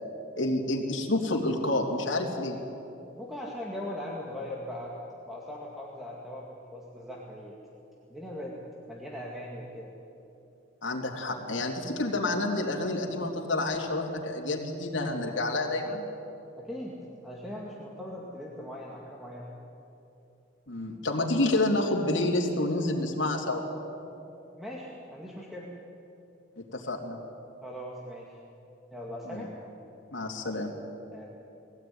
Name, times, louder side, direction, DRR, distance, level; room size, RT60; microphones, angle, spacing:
voice 1, 0.4-2.6 10.8-16.0 20.7-23.6 26.6-27.2 29.2-29.5 30.1-30.7, left 2 dB, 70° left, 0 dB, 3.0 m, -29 dB
voice 2, 3.2-5.0 5.2-7.6 8.1-8.6 8.9-9.9 16.6-19.5 24.6-25.7 27.6-28.4 28.9-29.5 31.1-31.3, left 1 dB, ahead, -4 dB, 2.1 m, -40 dB
21.0 x 17.0 x 9.6 m, 2.8 s
head